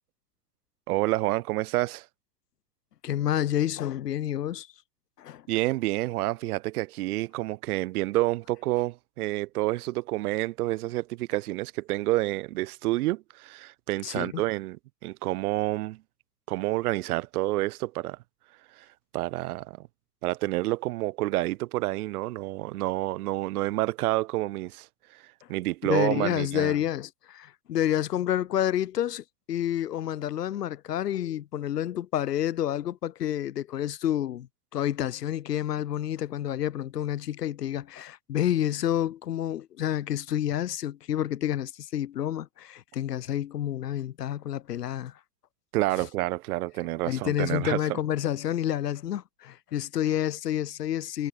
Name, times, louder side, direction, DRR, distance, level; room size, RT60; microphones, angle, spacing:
voice 1, 0.9-2.1 5.5-16.0 16.5-18.2 18.8-18.9 19.1-19.9 20.2-24.9 25.1-25.2 25.5-26.8 45.7-48.0, right 18 dB, 70° right, 1.6 m, -29 dB
voice 2, 3.0-4.7 5.2-5.4 14.0-14.4 25.9-34.5 34.7-45.1 47.1-51.3, left 11 dB, 85° left, 1.3 m, -29 dB
hypercardioid pair, 85°, 47 cm